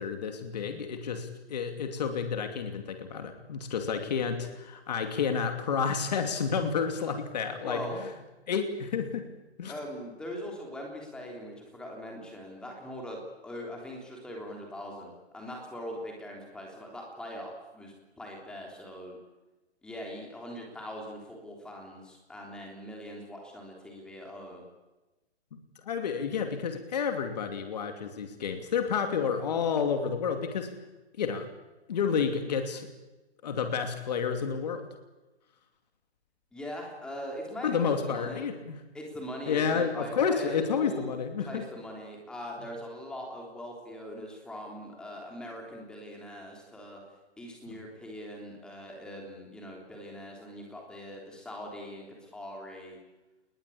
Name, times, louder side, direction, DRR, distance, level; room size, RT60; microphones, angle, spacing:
voice 1, 0.0-7.8 8.5-9.3 9.6-9.7 25.9-30.7 31.2-31.5 31.9-32.9 33.4-34.9 37.6-38.8 39.5-41.6, left 6 dB, 35° left, 6 dB, 2.7 m, -30 dB
voice 2, 7.6-8.0 9.7-19.2 19.8-24.6 36.5-38.4 38.9-47.0 47.4-53.0, equal, ahead, 0 dB, 3.4 m, -41 dB
30.0 x 20.0 x 8.6 m, 1.1 s
hypercardioid pair, 175°, 34 cm